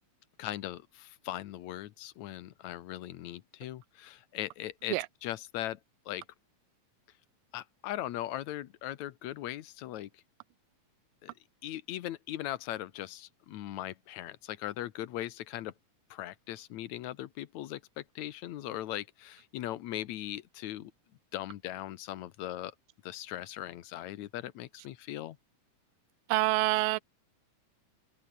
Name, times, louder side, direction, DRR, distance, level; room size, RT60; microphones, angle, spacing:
voice 1, 0.4-5.0 5.2-5.8 6.1-6.2 7.5-10.2 11.2-11.3 11.6-15.7 16.1-20.9 21.3-22.7 23.0-25.4, left 13 dB, 70° left, 2.2 m, -39 dB
voice 2, 26.3-27.0, right 21 dB, 90° right, 2.3 m, -26 dB
omnidirectional pair, 3.8 m